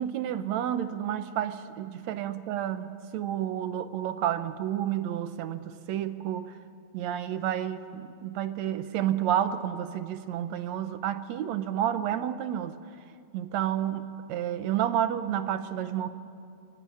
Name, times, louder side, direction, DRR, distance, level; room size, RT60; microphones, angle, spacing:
voice 1, 0.0-6.5 6.9-12.8 13.3-16.1, right 10 dB, 70° right, 11 dB, 2.0 m, -30 dB
23.5 x 17.0 x 9.8 m, 2.4 s
omnidirectional pair, 3.7 m